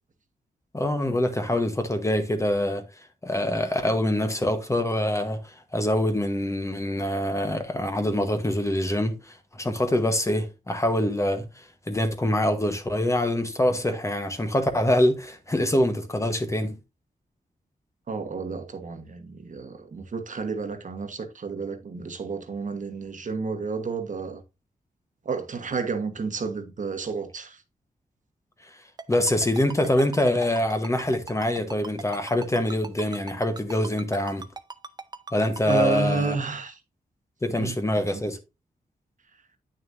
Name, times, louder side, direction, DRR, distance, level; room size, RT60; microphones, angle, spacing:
voice 1, 0.7-2.8 3.2-16.7 29.1-34.5 35.3-36.3 37.4-38.4, left 1 dB, 20° left, 1.1 m, -25 dB
voice 2, 18.1-24.4 25.2-27.6 35.6-36.8 37.5-37.8 38.1-38.2, right 4 dB, 50° right, 1.3 m, -31 dB
Ringtone, 29.0-35.7, right 4 dB, 25° right, 0.6 m, -38 dB
9.0 x 6.4 x 2.6 m
wide cardioid pair, 110°, 16 cm